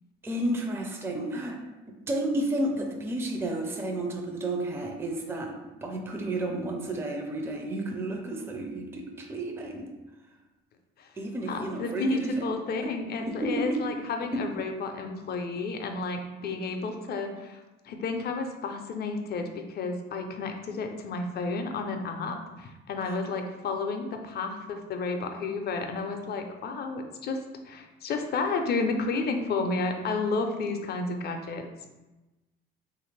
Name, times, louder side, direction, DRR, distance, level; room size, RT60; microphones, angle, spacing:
voice 1, 0.2-1.6 2.1-5.5 5.8-9.9 11.2-12.3 12.8-12.9 13.4-13.8 14.3-14.4 23.0-23.2, right 1 dB, 10° right, 2 dB, 0.4 m, -31 dB
voice 2, 11.5-31.7, left 3 dB, 50° left, 5 dB, 0.5 m, -31 dB
2.8 x 2.5 x 3.2 m, 1.1 s
supercardioid pair, 85°, 21 cm